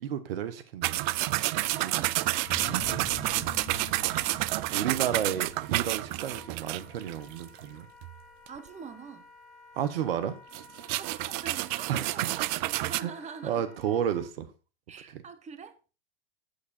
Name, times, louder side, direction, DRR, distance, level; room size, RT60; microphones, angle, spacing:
voice 1, 0.0-1.1 1.8-2.0 2.6-3.0 4.7-7.9 9.8-10.4 11.9-12.1 13.0-13.1 13.4-14.5 15.1-15.2, right 9 dB, 75° right, 1.2 m, -32 dB
sound 1, 0.8-7.6 8.0-8.1 8.5-8.6 10.5-13.0, right 18 dB, 55° right, 0.5 m, -29 dB
Wind instrument woodwind instrument, 1.5-14.3, left 2 dB, ahead, 3.5 m, -55 dB
voice 2, 1.7-3.4 8.5-9.3 10.9-13.7 14.9-15.8, right 6 dB, 25° right, 1.5 m, -46 dB
sound 2, 2.4-8.0, left 12 dB, 35° left, 0.8 m, -47 dB
8.5 x 8.2 x 4.2 m
hypercardioid pair, 105°, 29 cm